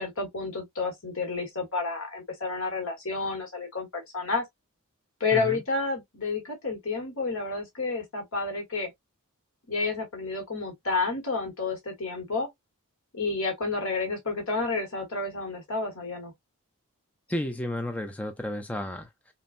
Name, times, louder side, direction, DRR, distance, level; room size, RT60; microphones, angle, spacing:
voice 1, 0.0-4.4 5.2-8.9 9.7-12.5 13.1-16.3, left 3 dB, 65° left, 1.3 m, -30 dB
voice 2, 5.3-5.6 17.3-19.3, left 1 dB, 5° left, 0.4 m, -33 dB
5.5 x 2.1 x 2.5 m
head